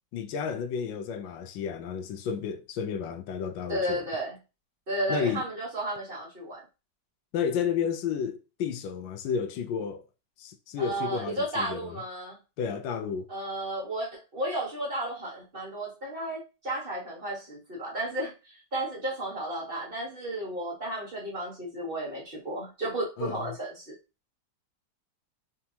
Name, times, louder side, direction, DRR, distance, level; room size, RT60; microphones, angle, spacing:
voice 1, 0.1-4.0 5.1-5.4 7.3-10.0 10.4-12.0 12.6-13.3 23.2-23.5, left 7 dB, 85° left, 1.3 m, -32 dB
voice 2, 3.7-4.4 4.9-6.6 10.8-12.4 13.3-23.9, right 1 dB, 30° right, 1.4 m, -33 dB
3.9 x 3.5 x 2.7 m
omnidirectional pair, 2.0 m